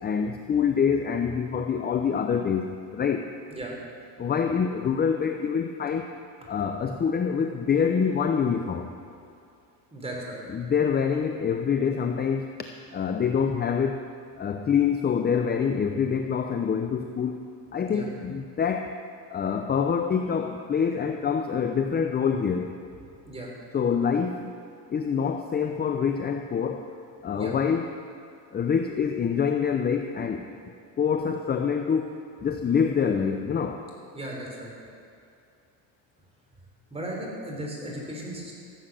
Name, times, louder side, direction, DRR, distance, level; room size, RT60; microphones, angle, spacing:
voice 1, 0.0-3.3 4.2-6.1 6.5-8.9 10.5-12.6 12.9-14.1 14.4-17.4 17.7-19.0 19.3-22.8 23.7-24.5 24.9-26.8 27.2-27.9 28.5-30.5 31.0-33.8, left 6 dB, 25° left, 5 dB, 0.6 m, -26 dB
voice 2, 9.9-10.4 17.9-18.1 23.3-23.5 27.3-27.5 34.1-34.7 36.9-38.5, right 1 dB, 15° right, -2 dB, 3.5 m, -36 dB
14.5 x 8.1 x 6.4 m, 2.6 s
supercardioid pair, 105°, 42 cm